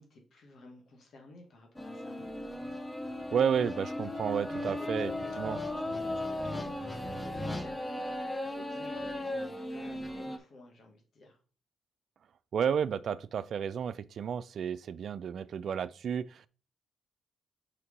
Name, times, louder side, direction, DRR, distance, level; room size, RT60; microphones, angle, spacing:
voice 1, 0.0-2.2 4.5-11.4, left 2 dB, 60° left, 1.6 m, -52 dB
sound 1, 1.8-10.4, left 1 dB, 15° left, 0.9 m, -36 dB
voice 2, 3.3-5.1 5.4-5.6 12.5-16.5, right 7 dB, 60° right, 0.3 m, -31 dB
4.5 x 4.4 x 5.0 m
cardioid pair, 85°, 0 cm